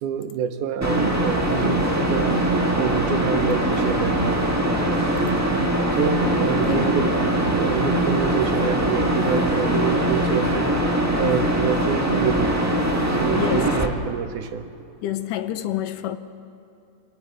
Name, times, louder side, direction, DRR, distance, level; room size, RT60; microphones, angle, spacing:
voice 1, 0.0-2.4 2.8-4.4 5.9-7.1 7.4-10.8 11.2-12.6 13.1-14.7, right 8 dB, 75° right, 2.4 m, -26 dB
sound 1, 0.8-13.9, right 1 dB, 25° right, 0.3 m, -22 dB
voice 2, 6.6-7.0 13.3-13.7 15.0-16.2, left 12 dB, 85° left, 2.4 m, -27 dB
27.5 x 23.5 x 4.9 m
omnidirectional pair, 3.7 m